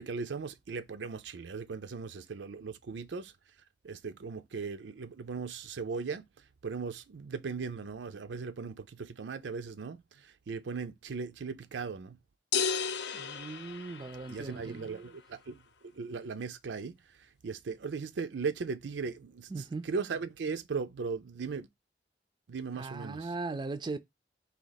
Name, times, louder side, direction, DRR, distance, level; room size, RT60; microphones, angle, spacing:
voice 1, 0.0-3.3 3.8-6.3 6.6-12.2 14.3-17.0 17.4-21.7 22.5-23.3, right 5 dB, 90° right, 0.5 m, -38 dB
sound 1, 12.5-14.6, left 6 dB, 70° left, 0.5 m, -33 dB
voice 2, 13.1-14.9 19.5-19.9 22.8-24.0, right 3 dB, 25° right, 0.4 m, -38 dB
4.2 x 2.8 x 3.9 m
head